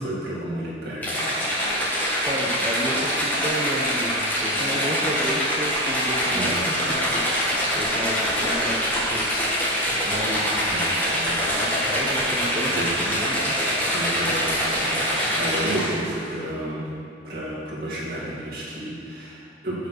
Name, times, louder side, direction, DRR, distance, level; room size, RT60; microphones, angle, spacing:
voice 1, 0.0-1.4 6.3-6.7 10.6-11.6 12.7-13.1 13.9-16.9 17.2-19.9, right 1 dB, 55° right, -8 dB, 2.1 m, -32 dB
sound 1, 1.0-16.1, equal, 10° left, 1.4 m, -24 dB
voice 2, 2.2-9.5 10.0-10.7 11.6-13.5 15.2-15.3, right 1 dB, 25° right, -1 dB, 0.9 m, -32 dB
7.0 x 4.9 x 6.4 m, 2.3 s
head